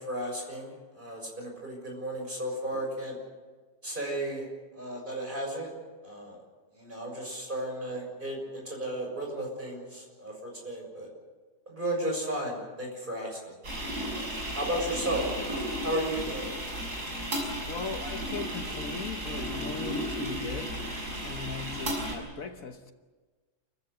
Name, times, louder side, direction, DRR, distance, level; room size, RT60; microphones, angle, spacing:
voice 1, 0.0-3.2 3.8-4.5 4.7-5.7 6.0-6.4 6.7-11.1 11.7-13.5 14.1-14.3 14.5-15.3 15.8-16.5, right 1 dB, 30° right, 6.8 m, -34 dB
sound 1, 13.6-22.1, equal, 85° right, 6.6 m, -34 dB
voice 2, 17.6-20.8 21.2-22.9, left 5 dB, 60° left, 1.5 m, -39 dB
29.0 x 15.0 x 8.1 m
omnidirectional pair, 1.7 m